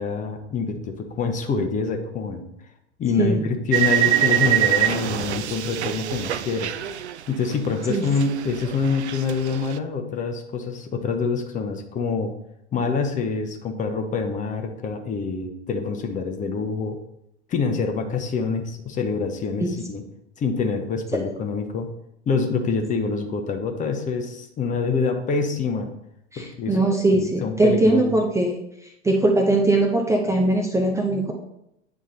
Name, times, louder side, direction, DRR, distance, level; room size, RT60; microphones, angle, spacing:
voice 1, 0.0-2.4 3.0-6.7 7.3-12.3 12.7-17.0 17.5-20.0 20.4-21.9 22.3-25.9 26.4-26.8 27.1-28.1, left 4 dB, 20° left, 5 dB, 0.8 m, -26 dB
sound 1, 3.7-7.7 7.9-9.8, right 12 dB, 70° right, 0.5 m, -24 dB
voice 2, 26.3-28.6 29.0-31.3, right 2 dB, 10° right, 1 dB, 0.7 m, -20 dB
8.7 x 3.6 x 4.1 m, 0.80 s
figure-of-eight pair, 95°, 35 cm